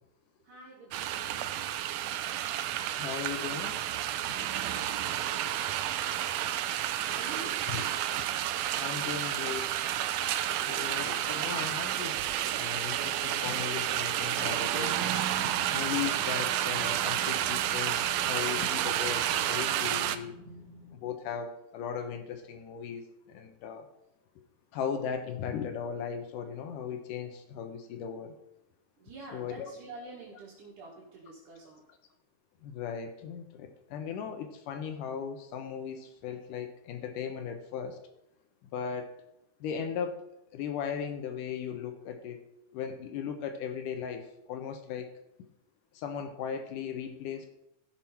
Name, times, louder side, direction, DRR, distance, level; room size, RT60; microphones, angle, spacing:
voice 1, 0.4-1.5 4.3-5.5 7.0-7.7 10.5-11.0 29.0-31.9, right 3 dB, 70° right, -5 dB, 3.2 m, -48 dB
sound 1, 0.9-20.2, right 12 dB, 90° right, 1.5 m, -31 dB
voice 2, 3.0-3.8 4.9-5.0 5.4-5.5 7.7-8.1 8.8-9.7 10.5-12.3 12.6-20.4 20.9-23.9 24.7-28.4 29.3-29.7 32.6-38.0 38.7-39.1 39.6-40.2 40.5-42.4 42.7-45.1 45.9-47.5, left 7 dB, 80° left, 6 dB, 2.4 m, -37 dB
sound 2, 7.2-8.2 8.4-11.8, left 1 dB, 40° left, 2.7 m, -48 dB
sound 3, 14.4-21.1, left 1 dB, 20° right, 4.0 m, -49 dB
15.0 x 6.1 x 4.3 m, 0.84 s
omnidirectional pair, 3.7 m